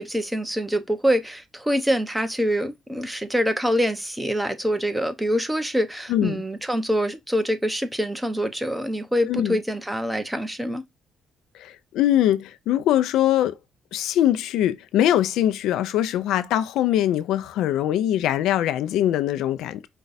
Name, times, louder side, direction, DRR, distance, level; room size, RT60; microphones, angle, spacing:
voice 1, 0.0-10.8, equal, 10° right, 0.8 m, -25 dB
voice 2, 6.1-6.4 9.3-9.6 11.5-13.5 13.9-19.9, left 12 dB, 90° left, 0.5 m, -22 dB
5.2 x 2.3 x 4.0 m
cardioid pair, 90°, 0 cm